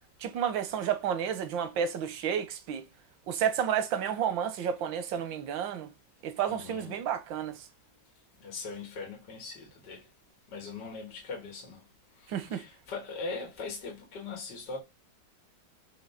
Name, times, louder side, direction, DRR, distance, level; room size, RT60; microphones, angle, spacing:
voice 1, 0.2-2.8 3.3-5.9 6.2-7.5 12.3-12.6, right 8 dB, 90° right, 1.6 m, -31 dB
voice 2, 6.5-6.9 8.4-10.0 10.5-11.8 12.2-14.8, left 4 dB, 65° left, 2.5 m, -40 dB
7.8 x 3.0 x 5.7 m
omnidirectional pair, 2.0 m